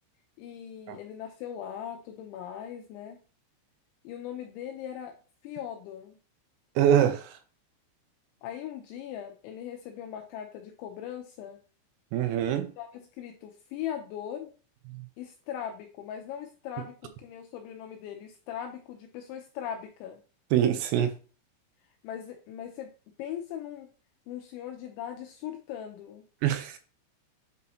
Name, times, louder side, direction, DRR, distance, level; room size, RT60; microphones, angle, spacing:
voice 1, 0.4-3.2 4.0-5.2 5.4-6.2 8.4-11.6 12.8-14.5 15.2-20.2 22.0-22.9 23.2-23.9 24.3-26.3, left 10 dB, 85° left, 2.6 m, -39 dB
voice 2, 6.8-7.4 12.1-12.7 14.9-15.1 20.5-21.1 26.4-26.8, right 10 dB, 90° right, 3.3 m, -24 dB
8.4 x 4.2 x 2.8 m
omnidirectional pair, 5.9 m